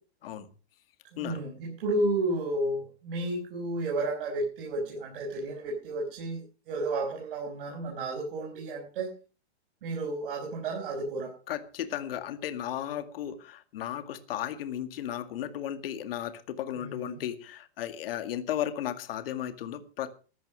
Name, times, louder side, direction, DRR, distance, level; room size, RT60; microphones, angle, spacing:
voice 1, 1.1-9.1 9.8-11.3 16.8-17.2, right 2 dB, 55° right, -1 dB, 5.5 m, -32 dB
voice 2, 11.5-20.1, left 11 dB, 55° left, 10 dB, 2.1 m, -35 dB
14.5 x 10.5 x 6.3 m, 0.37 s
hypercardioid pair, 160°, 34 cm